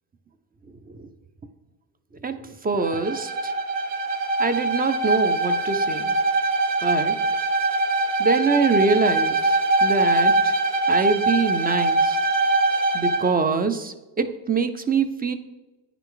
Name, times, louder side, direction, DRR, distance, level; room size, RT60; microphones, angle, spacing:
voice 1, 2.2-3.5 4.4-6.2 6.8-7.2 8.2-9.5 9.8-10.6 10.9-12.2 12.9-15.3, right 4 dB, 20° right, 9 dB, 0.4 m, -24 dB
Bowed string instrument, 2.8-13.3, right 2 dB, 75° right, 1.0 m, -22 dB
9.8 x 5.8 x 3.8 m, 1.1 s
cardioid pair, 165°, 43 cm